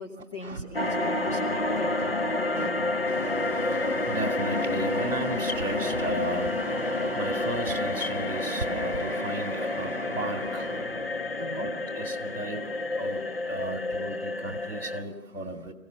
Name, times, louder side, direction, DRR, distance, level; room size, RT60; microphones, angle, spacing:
voice 1, 0.0-2.8 11.4-11.7 12.0-12.1, equal, 20° left, -1 dB, 1.1 m, -40 dB
sound 1, 0.7-15.0, left 2 dB, 40° left, 1.1 m, -29 dB
voice 2, 1.6-2.1 2.5-2.7 3.0-11.1 11.6-12.7 13.0-13.2 13.5-15.7, right 2 dB, 55° right, 6 dB, 2.6 m, -35 dB
24.0 x 16.5 x 6.7 m, 0.88 s
figure-of-eight pair, 165°, 46 cm